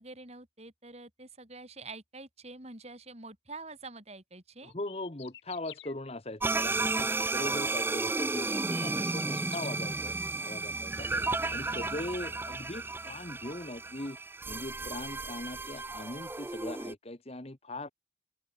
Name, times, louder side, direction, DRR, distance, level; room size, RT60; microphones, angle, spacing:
voice 1, 0.0-4.7 11.7-12.0, right 3 dB, 30° right, 3.9 m, -47 dB
voice 2, 4.6-11.1 11.5-14.2 14.5-17.9, left 1 dB, 30° left, 1.2 m, -40 dB
sound 1, 4.7-5.9 7.6-7.7 8.3-9.7, left 12 dB, 60° left, 4.3 m, -50 dB
sound 2, 6.4-16.9, right 3 dB, 10° right, 0.4 m, -33 dB
open air
head